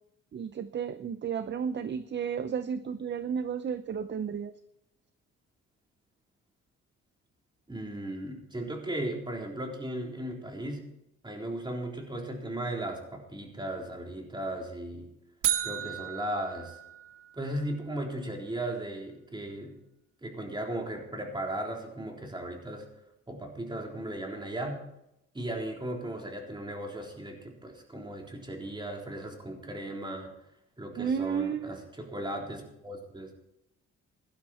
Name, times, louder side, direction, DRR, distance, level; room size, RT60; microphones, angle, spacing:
voice 1, 0.3-4.5 31.0-31.9, right 7 dB, 35° right, 13 dB, 0.6 m, -33 dB
voice 2, 7.7-10.8 11.2-15.1 15.6-16.8 17.3-19.8 20.2-22.9 23.3-24.8 25.3-30.3 30.8-33.4, right 1 dB, 15° right, 0 dB, 3.6 m, -36 dB
sound 1, 15.4-17.6, right 11 dB, 85° right, 1.4 m, -33 dB
16.0 x 12.0 x 4.3 m, 0.85 s
cardioid pair, 90°, 30 cm